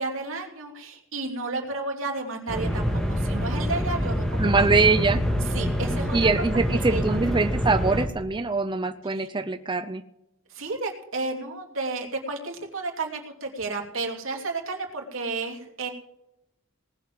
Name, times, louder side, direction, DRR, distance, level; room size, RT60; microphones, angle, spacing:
voice 1, 0.0-4.9 5.5-6.3 6.7-7.0 9.1-9.3 10.5-15.9, right 3 dB, 80° right, 1 dB, 3.1 m, -32 dB
sound 1, 2.5-8.1, equal, 5° left, 2.4 m, -26 dB
voice 2, 4.4-5.2 6.1-10.0, right 3 dB, 25° right, 9 dB, 0.6 m, -23 dB
19.0 x 7.2 x 7.6 m, 0.83 s
head